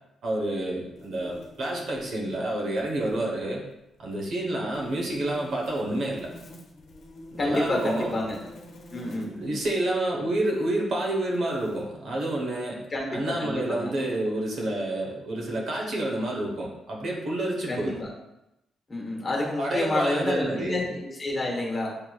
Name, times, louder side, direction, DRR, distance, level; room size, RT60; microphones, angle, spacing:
voice 1, 0.2-3.6 4.0-6.3 7.3-8.1 9.1-12.8 13.1-18.0 19.6-20.8, right 1 dB, 60° right, -1 dB, 1.1 m, -29 dB
sound 1, 1.0-2.5 2.8-3.3 4.7-9.7 10.6-10.7 11.2-11.8, left 1 dB, 60° left, 1.0 m, -47 dB
voice 2, 7.4-8.4 8.9-9.3 12.9-13.9 17.7-18.1 18.9-22.0, left 2 dB, 30° left, -2 dB, 1.2 m, -29 dB
6.6 x 2.9 x 2.3 m, 0.89 s
cardioid pair, 110°, 0 cm